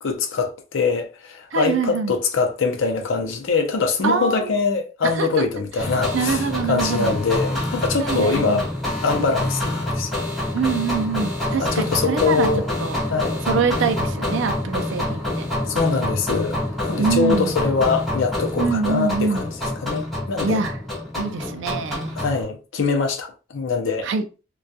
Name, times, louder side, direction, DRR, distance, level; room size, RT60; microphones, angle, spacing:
voice 1, 0.0-8.6 9.0-10.1 11.5-12.7 13.1-13.4 15.7-19.5 19.8-20.6 22.2-24.1, left 4 dB, 65° left, 0.5 m, -23 dB
voice 2, 1.5-2.1 4.0-4.5 5.0-5.4 6.1-7.2 8.0-8.7 10.5-13.0 13.5-15.5 17.0-17.5 18.6-19.4 20.4-20.8 21.2-22.2 24.0-24.2, right 5 dB, 60° right, 0.4 m, -24 dB
sound 1, 5.8-22.4, left 1 dB, ahead, 0.9 m, -27 dB
2.3 x 2.2 x 2.6 m
head